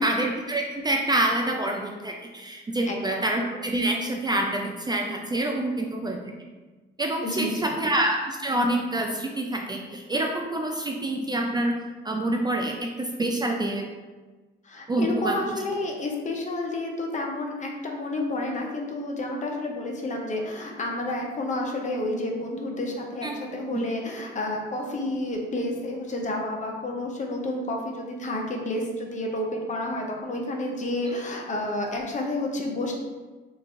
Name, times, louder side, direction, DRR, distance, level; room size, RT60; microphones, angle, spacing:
voice 1, 0.0-6.3 7.0-11.8 12.0-13.9 14.9-15.6 23.2-23.3 23.7-23.8, right 1 dB, 20° right, 1 dB, 0.3 m, -27 dB
voice 2, 2.9-3.2 7.2-7.8 14.6-32.9, left 1 dB, 40° left, 1 dB, 0.6 m, -30 dB
3.0 x 2.5 x 3.5 m, 1.3 s
cardioid pair, 90°, 20 cm